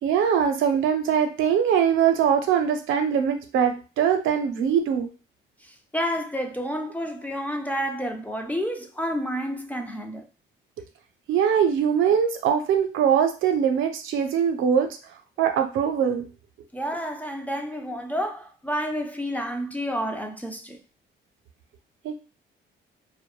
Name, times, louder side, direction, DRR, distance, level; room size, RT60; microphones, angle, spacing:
voice 1, 0.0-5.1 11.3-14.9 15.4-16.3 22.0-22.1, right 8 dB, 80° right, 0.5 m, -22 dB
voice 2, 5.6-10.3 16.7-20.8, equal, 10° left, 0.4 m, -30 dB
2.2 x 2.0 x 3.0 m
cardioid pair, 90°, 20 cm